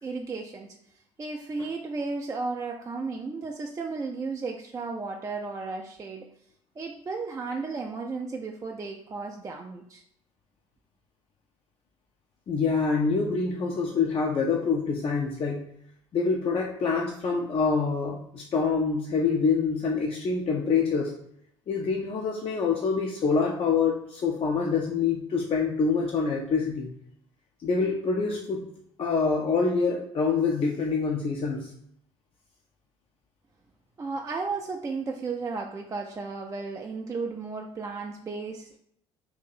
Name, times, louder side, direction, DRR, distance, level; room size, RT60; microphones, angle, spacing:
voice 1, 0.0-6.3 6.8-10.0 34.0-38.8, right 4 dB, 20° right, 2 dB, 0.4 m, -34 dB
voice 2, 12.5-15.6 16.1-21.1 21.7-26.9 27.6-28.6 29.0-31.7, left 5 dB, 40° left, -1 dB, 0.5 m, -26 dB
2.8 x 2.5 x 4.0 m, 0.71 s
hypercardioid pair, 60°, 15 cm